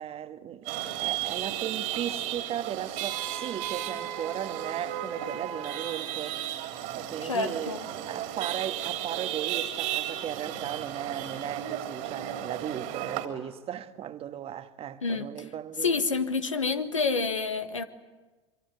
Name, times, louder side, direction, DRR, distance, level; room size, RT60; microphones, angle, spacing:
voice 1, 0.0-16.0, right 10 dB, 40° right, 1.6 m, -36 dB
Chatter / Vehicle horn car horn honking / Traffic noise roadway noise, 0.7-13.3, right 11 dB, 55° right, 3.4 m, -34 dB
voice 2, 7.2-7.8 15.0-15.3 15.8-17.8, left 4 dB, 85° left, 1.7 m, -28 dB
26.0 x 24.0 x 9.5 m
figure-of-eight pair, 75°, 16 cm